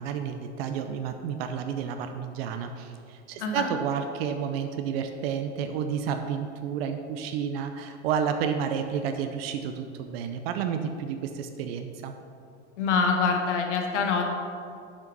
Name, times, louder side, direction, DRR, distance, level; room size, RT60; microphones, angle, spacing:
voice 1, 0.0-12.1, right 7 dB, 55° right, 7 dB, 0.7 m, -31 dB
voice 2, 3.3-3.7 12.8-14.3, left 5 dB, 80° left, 3 dB, 1.1 m, -25 dB
6.8 x 5.8 x 5.2 m, 2.4 s
hypercardioid pair, 120°, 35 cm